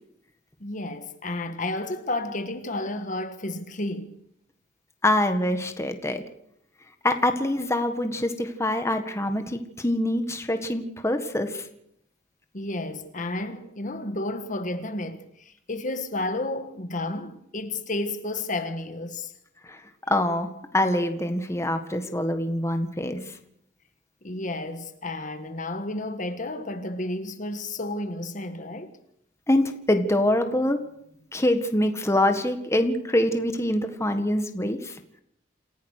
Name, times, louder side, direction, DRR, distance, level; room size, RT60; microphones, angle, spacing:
voice 1, 0.6-4.2 12.5-19.3 24.2-29.0, left 2 dB, 45° left, 1.5 m, -32 dB
voice 2, 5.0-6.2 7.0-11.6 19.7-19.8 20.1-20.5 20.7-23.2 29.5-30.8 31.3-35.0, left 1 dB, 15° left, 1.6 m, -24 dB
28.0 x 16.0 x 6.6 m
head